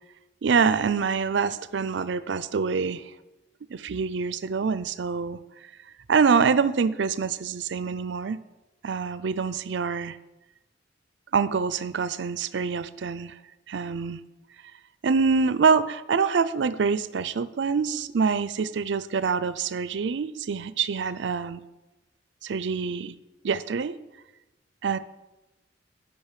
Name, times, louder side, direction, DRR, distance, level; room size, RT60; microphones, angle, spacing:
voice 1, 0.4-3.0 3.7-5.4 6.1-8.4 8.8-10.2 11.3-13.3 13.7-14.2 15.0-21.6 22.4-23.2 23.4-24.0 24.8-25.0, right 5 dB, 70° right, 15 dB, 0.5 m, -25 dB
8.9 x 5.5 x 7.3 m, 1.0 s
head